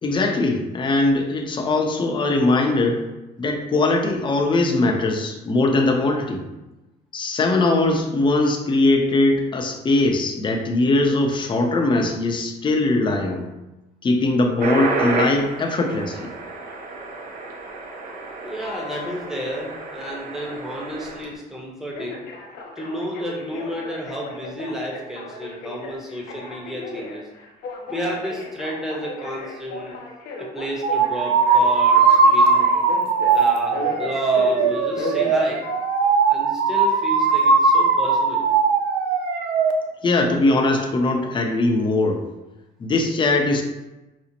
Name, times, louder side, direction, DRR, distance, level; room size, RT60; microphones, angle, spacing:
voice 1, 0.0-3.0 3.4-6.4 7.1-13.5 14.0-16.3 40.0-42.2 42.8-43.6, left 2 dB, 30° left, 2 dB, 0.6 m, -20 dB
sound 1, 14.6-21.3, right 3 dB, 55° right, 0.7 m, -30 dB
voice 2, 18.4-22.2 22.8-27.2 27.9-30.0 30.4-32.7 33.3-35.6 36.3-38.5, equal, 5° right, -3 dB, 0.9 m, -31 dB
Telephone, 18.6-19.2 21.9-36.1 36.6-37.1, left 3 dB, 75° left, 0.7 m, -36 dB
sound 2, 30.8-39.7, right 4 dB, 90° right, 0.4 m, -19 dB
5.0 x 2.0 x 2.9 m, 1.0 s
cardioid pair, 110°, 17 cm